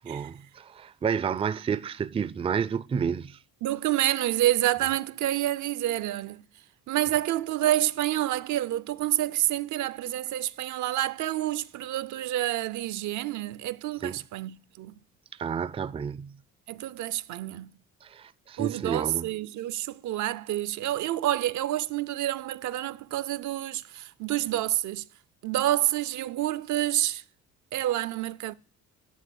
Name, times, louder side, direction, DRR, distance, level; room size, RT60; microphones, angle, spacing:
voice 1, 0.0-3.4 14.0-14.2 15.4-16.4 18.0-19.3, right 7 dB, 20° right, 0.3 m, -30 dB
voice 2, 3.6-6.4 6.9-14.9 16.7-17.7 18.6-25.0 25.4-27.2 27.7-28.5, right 14 dB, 75° right, 0.5 m, -28 dB
10.5 x 3.8 x 6.9 m
cardioid pair, 90°, 30 cm